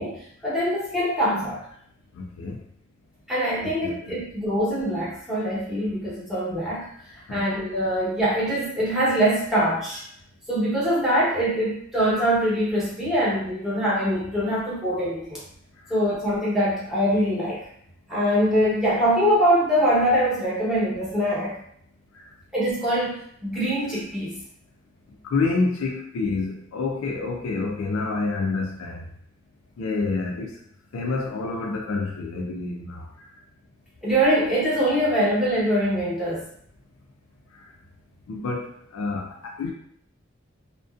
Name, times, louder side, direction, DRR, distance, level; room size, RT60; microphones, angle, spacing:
voice 1, 0.0-1.6 3.3-10.0 10.5-15.4 15.9-17.6 18.1-21.6 22.5-24.3 34.0-36.4, equal, ahead, -9 dB, 0.9 m, -23 dB
voice 2, 2.2-2.6 3.6-4.2 7.3-7.4 25.2-29.0 29.8-30.5 30.9-33.1 38.3-39.7, left 3 dB, 90° left, 1 dB, 0.3 m, -28 dB
2.5 x 2.1 x 2.3 m, 0.67 s
head